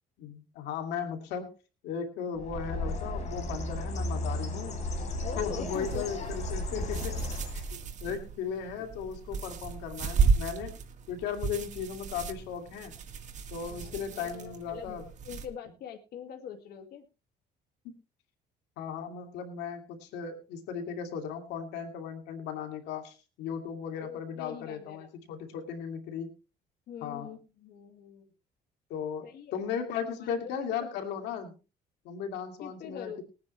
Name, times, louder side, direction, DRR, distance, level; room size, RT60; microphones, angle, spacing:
voice 1, 0.2-1.5 1.8-4.8 5.4-7.2 7.5-10.7 11.1-12.9 13.5-15.1 17.8-17.9 18.8-26.3 27.0-27.3 28.9-31.5 32.0-33.2, left 7 dB, 90° left, 5 dB, 2.4 m, -36 dB
Bird, 2.3-7.9, left 1 dB, 45° left, 4.1 m, -34 dB
voice 2, 5.2-6.1 6.7-7.1 13.7-17.0 24.0-25.1 26.9-28.3 29.2-29.6 30.2-30.9 32.6-33.2, left 8 dB, 70° left, 3 dB, 2.1 m, -44 dB
sound 1, 5.7-15.5, right 5 dB, 45° right, 1.9 m, -34 dB
20.5 x 9.6 x 3.2 m, 0.31 s
cardioid pair, 110°, 17 cm